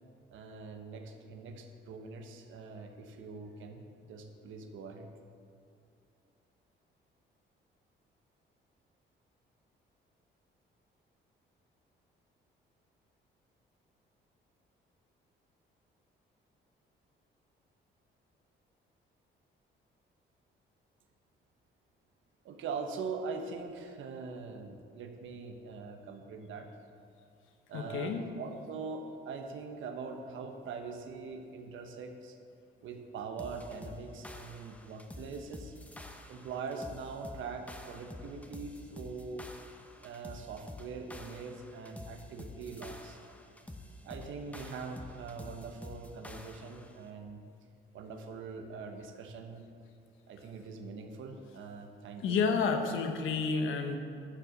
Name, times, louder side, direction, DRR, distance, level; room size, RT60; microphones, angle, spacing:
voice 1, 0.3-5.1 22.4-26.7 27.7-32.4 32.8-35.7 36.3-39.4 40.0-43.2 44.0-47.4 47.9-49.7 50.3-52.7, right 4 dB, 80° right, 5 dB, 1.2 m, -42 dB
voice 2, 27.7-28.2 52.2-54.0, left 5 dB, 85° left, 5 dB, 1.1 m, -30 dB
sound 1, 33.4-47.0, left 1 dB, 5° left, 0.9 m, -48 dB
11.5 x 6.9 x 6.6 m, 2.4 s
cardioid pair, 90°, 20 cm